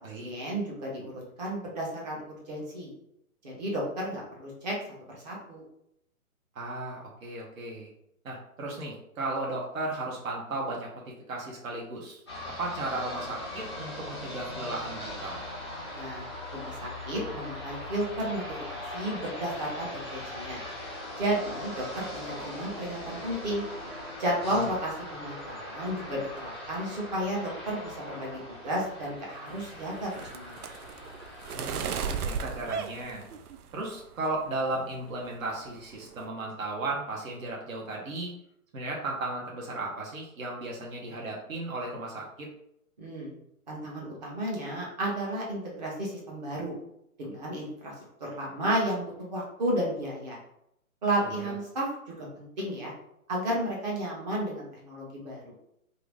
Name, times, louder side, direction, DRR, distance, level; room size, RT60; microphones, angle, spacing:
voice 1, 0.0-2.9 3.4-4.8 5.1-5.6 15.9-16.3 16.5-18.4 18.7-20.6 21.2-23.6 24.2-30.5 43.0-43.3 43.7-46.7 47.2-47.9 48.2-50.4 51.0-51.9 52.2-52.9 53.3-55.4, right 1 dB, 30° right, -3 dB, 1.0 m, -33 dB
voice 2, 6.5-7.9 8.2-11.0 11.3-12.2 12.6-15.4 24.5-24.7 31.5-33.2 33.7-38.3 38.7-42.5 51.2-51.5, right 2 dB, 65° right, -2 dB, 1.2 m, -35 dB
sound 1, 12.3-32.2, left 1 dB, 20° left, 0.4 m, -40 dB
sound 2, 29.5-33.9 34.3-34.8 35.1-35.3 35.6-36.2, right 6 dB, 90° right, 0.5 m, -36 dB
2.9 x 2.6 x 3.4 m, 0.77 s
hypercardioid pair, 160°, 44 cm